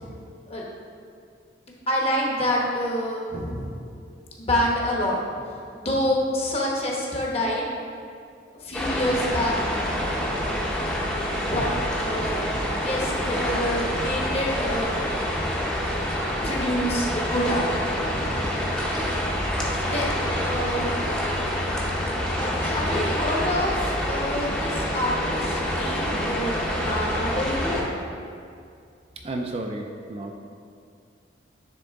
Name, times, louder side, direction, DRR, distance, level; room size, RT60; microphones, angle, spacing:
voice 1, 1.9-3.7 4.4-5.2 5.7-7.6 8.6-9.6 11.3-11.7 12.0-15.0 16.4-18.4 19.8-20.1 20.4-21.2 22.4-27.8, equal, 35° left, -2 dB, 1.0 m, -27 dB
sound 1, 8.7-27.8, equal, 5° left, 0.7 m, -27 dB
voice 2, 29.2-30.4, right 2 dB, 30° right, 2 dB, 0.4 m, -32 dB
9.7 x 3.6 x 3.5 m, 2.3 s
head